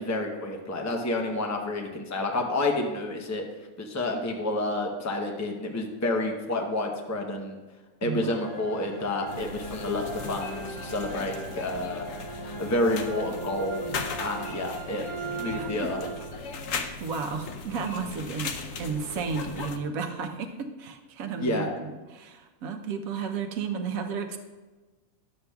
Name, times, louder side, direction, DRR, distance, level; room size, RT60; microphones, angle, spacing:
voice 1, 0.0-3.4 3.8-7.6 8.0-12.1 12.6-13.8 14.2-15.1 15.4-16.0 21.4-21.7, left 2 dB, 20° left, 2 dB, 0.5 m, -29 dB
voice 2, 8.0-8.4 15.6-15.7 17.0-18.5 18.8-24.4, right 5 dB, 80° right, 6 dB, 1.1 m, -33 dB
sound 1, 8.2-16.6, right 2 dB, 40° left, 2.9 m, -38 dB
sound 2, 9.3-19.8, left 4 dB, 70° left, 1.0 m, -38 dB
11.5 x 7.7 x 2.3 m, 1.3 s
omnidirectional pair, 1.5 m